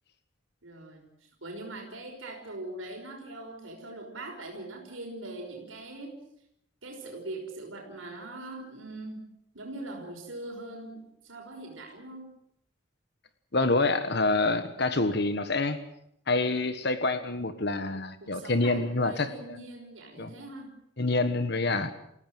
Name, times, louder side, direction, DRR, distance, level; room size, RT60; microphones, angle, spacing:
voice 1, 0.6-6.2 6.8-9.3 9.5-12.3 18.2-20.7, right 2 dB, 90° right, 1 dB, 5.6 m, -41 dB
voice 2, 13.5-15.8 16.3-19.3 20.2-20.3 21.0-21.9, left 2 dB, 55° left, 10 dB, 1.4 m, -27 dB
29.0 x 16.5 x 7.8 m, 0.76 s
head